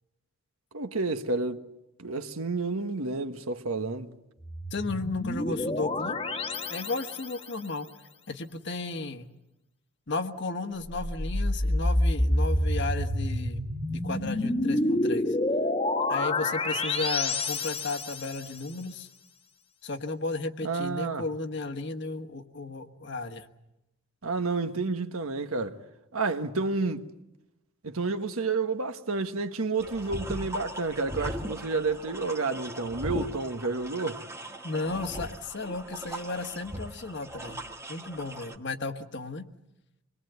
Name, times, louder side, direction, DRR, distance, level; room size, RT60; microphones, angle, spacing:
voice 1, 0.7-1.6 2.0-4.1 20.6-21.3 24.2-25.8 26.1-27.0 27.8-34.2, right 3 dB, 80° right, 1.4 m, -30 dB
sound 1, 4.4-7.5 10.9-18.5, left 1 dB, 25° left, 1.3 m, -28 dB
voice 2, 4.7-6.2 6.7-7.9 8.3-9.3 10.1-13.6 13.9-15.4 16.1-19.1 19.8-23.5 34.6-37.6 37.9-39.4, left 3 dB, 55° left, 1.4 m, -34 dB
sound 2, 29.8-38.6, equal, 15° right, 1.5 m, -39 dB
25.5 x 21.5 x 8.1 m
head